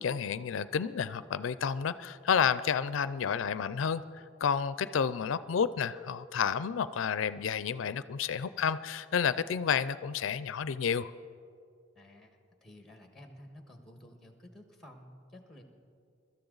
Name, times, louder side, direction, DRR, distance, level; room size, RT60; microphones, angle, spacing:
voice 1, 0.0-11.1, left 7 dB, 85° left, 15 dB, 0.4 m, -30 dB
voice 2, 11.9-12.3 12.6-15.6, left 1 dB, ahead, 4 dB, 1.4 m, -52 dB
23.5 x 13.0 x 3.9 m, 2.4 s
head